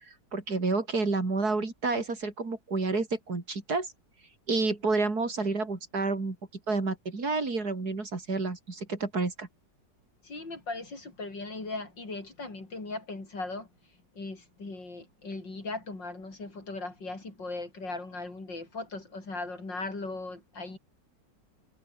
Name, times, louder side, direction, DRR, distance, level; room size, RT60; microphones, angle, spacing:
voice 1, 0.1-3.9 4.5-6.4 6.7-9.5, right 3 dB, 60° right, 4.2 m, -29 dB
voice 2, 10.2-13.7 14.1-20.8, left 3 dB, 85° left, 6.4 m, -38 dB
omnidirectional pair, 1.9 m